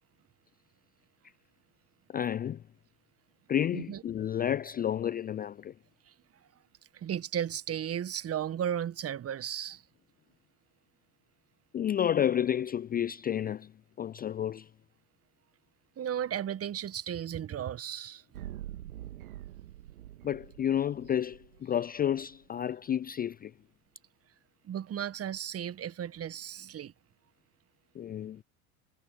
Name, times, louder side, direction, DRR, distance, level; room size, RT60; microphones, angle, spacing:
voice 1, 2.1-2.6 3.5-5.7 11.7-13.7 14.0-14.7 20.2-23.5 27.9-28.4, left 10 dB, 20° left, 0.5 m, -31 dB
voice 2, 6.9-9.8 16.0-18.5 24.6-26.9, right 9 dB, 35° right, 1.6 m, -35 dB
sound 1, 18.3-22.3, right 13 dB, 75° right, 2.5 m, -45 dB
hypercardioid pair, 75°, 43 cm